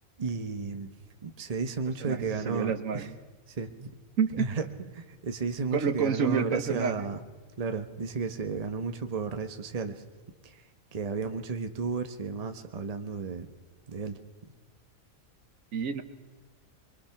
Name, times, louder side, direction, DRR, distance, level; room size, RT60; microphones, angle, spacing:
voice 1, 0.2-0.9 1.2-3.1 3.5-3.9 4.3-4.7 4.9-7.2 7.6-10.0 10.4-10.6 10.9-13.5 13.9-14.2, right 4 dB, 30° right, 7 dB, 1.0 m, -33 dB
voice 2, 2.0-3.1 4.2-4.3 5.7-6.9 15.7-16.0, right 7 dB, 70° right, 10 dB, 1.5 m, -28 dB
23.0 x 22.5 x 5.9 m, 1.4 s
omnidirectional pair, 1.5 m